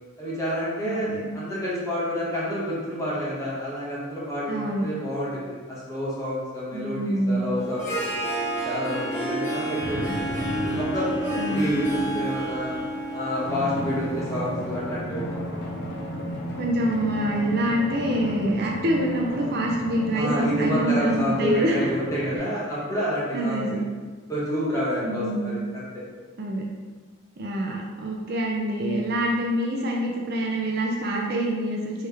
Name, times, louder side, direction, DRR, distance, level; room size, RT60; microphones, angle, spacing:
voice 1, 0.2-1.1 1.3-8.1 8.6-10.1 10.8-12.8 13.1-15.7 20.1-23.7 24.3-26.0, equal, 15° left, -8 dB, 1.2 m, -29 dB
voice 2, 0.8-1.3 4.5-4.9 6.7-7.5 11.4-11.7 12.0-12.1 16.5-21.9 23.3-23.8 25.0-25.5 26.4-26.6 27.4-32.1, right 1 dB, 50° right, -1 dB, 0.5 m, -26 dB
Harp, 7.6-14.7, right 1 dB, 35° left, 1.1 m, -30 dB
sound 1, 9.8-12.9, equal, 90° right, 1.2 m, -36 dB
Drum, 13.4-22.4, equal, 50° left, 0.6 m, -33 dB
4.8 x 3.3 x 3.4 m, 1.4 s
head